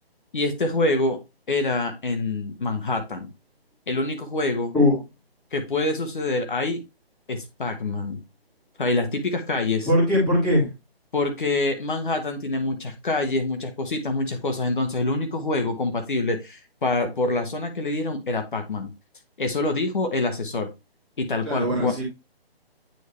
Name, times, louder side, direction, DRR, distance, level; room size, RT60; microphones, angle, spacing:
voice 1, 0.3-1.2 1.5-3.3 3.9-4.7 5.5-6.8 7.3-8.2 8.8-9.9 11.1-18.9 19.4-20.7 21.2-21.9, left 2 dB, 55° left, 6 dB, 1.3 m, -26 dB
voice 2, 9.9-10.7 21.4-22.0, left 1 dB, ahead, -9 dB, 1.7 m, -20 dB
9.3 x 3.5 x 3.2 m, 0.24 s
hypercardioid pair, 170°, 31 cm